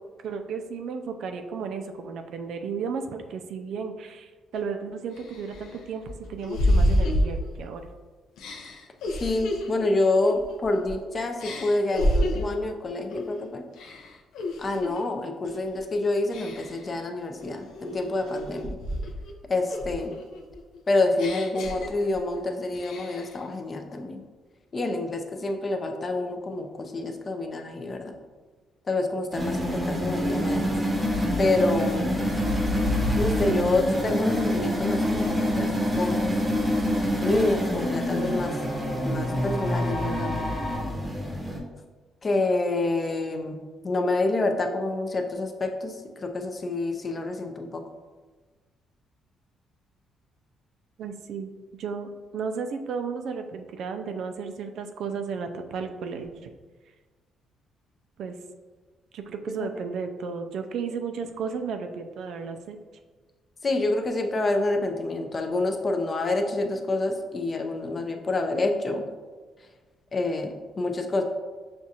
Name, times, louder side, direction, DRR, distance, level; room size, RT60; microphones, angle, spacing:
voice 1, 0.2-7.9 51.0-51.5 51.8-56.5 58.2-58.4 59.1-62.8, right 5 dB, 70° right, 6 dB, 0.3 m, -34 dB
sound 1, 4.5-4.6 5.2-7.9 8.4-11.0 11.4-12.6 13.1-13.4 13.7-15.0 15.4-15.8 16.3-16.9 17.4-19.3 19.7-22.4 22.7-23.4, equal, 85° left, 0.5 m, -29 dB
voice 2, 9.2-13.6 14.6-18.8 19.5-20.2 20.9-24.2 24.7-28.1 28.9-30.7 31.4-32.2 33.1-35.7 36.0-36.3 37.2-38.5 39.0-40.3 42.2-47.8 59.6-59.7 63.6-69.0 70.1-71.2, left 2 dB, 30° left, 4 dB, 0.4 m, -27 dB
sound 2, 29.3-41.6, equal, 15° right, 0.8 m, -26 dB
sound 3, 35.7-40.8, equal, 45° left, 0.9 m, -38 dB
6.0 x 2.4 x 2.7 m, 1.4 s
cardioid pair, 120°, 0 cm